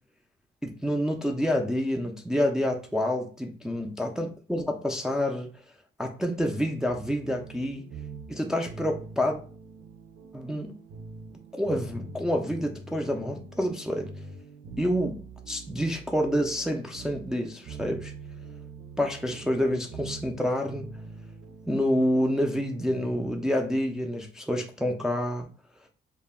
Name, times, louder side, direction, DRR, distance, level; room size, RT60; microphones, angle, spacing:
voice 1, 0.6-5.5 6.0-7.9 8.3-9.4 10.3-10.7 11.5-14.1 14.8-18.1 19.0-20.9 21.7-25.5, equal, 5° right, 0.4 m, -28 dB
sound 1, 6.9-23.5, right 4 dB, 60° right, 0.7 m, -44 dB
2.1 x 2.1 x 3.5 m
cardioid pair, 90°, 20 cm